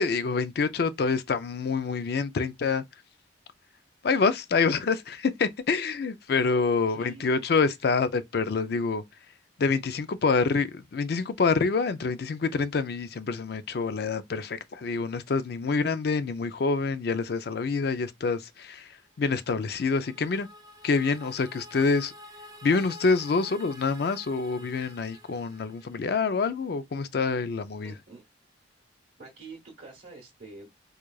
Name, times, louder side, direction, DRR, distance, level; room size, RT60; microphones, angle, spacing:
voice 1, 0.0-2.8 4.0-9.0 9.6-18.9 19.2-20.5 20.8-22.1 22.6-27.9, left 4 dB, 55° left, 0.4 m, -26 dB
voice 2, 6.9-7.4 7.8-7.9 27.8-28.2 29.2-30.7, right 3 dB, 45° right, 1.2 m, -46 dB
sound 1, 19.2-26.3, left 1 dB, 20° right, 0.5 m, -49 dB
4.6 x 2.4 x 2.3 m
head